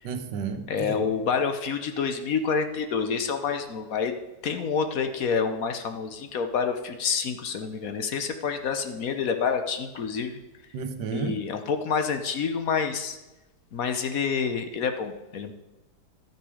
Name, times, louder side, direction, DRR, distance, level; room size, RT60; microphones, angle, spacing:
voice 1, 0.0-1.0 10.7-11.3, right 6 dB, 85° right, 8 dB, 1.6 m, -32 dB
voice 2, 0.7-4.1 4.4-10.4 11.1-13.2 13.7-15.5, left 6 dB, 60° left, 7 dB, 1.2 m, -28 dB
12.0 x 9.2 x 4.9 m, 1.1 s
omnidirectional pair, 1.8 m